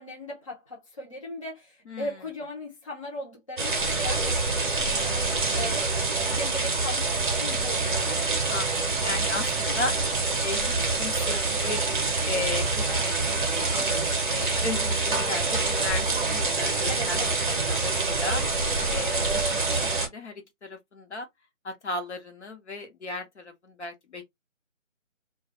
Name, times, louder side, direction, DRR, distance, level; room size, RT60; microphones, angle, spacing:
voice 1, 0.0-8.2 9.7-9.9 16.9-17.9, left 1 dB, 25° left, 0.6 m, -38 dB
sound 1, 3.6-20.1, right 3 dB, 40° right, 0.7 m, -26 dB
voice 2, 8.5-11.8 12.2-13.9 14.3-18.4 18.9-21.3 21.6-24.3, left 3 dB, 60° left, 0.8 m, -36 dB
2.3 x 2.1 x 2.8 m
figure-of-eight pair, 160°, 39 cm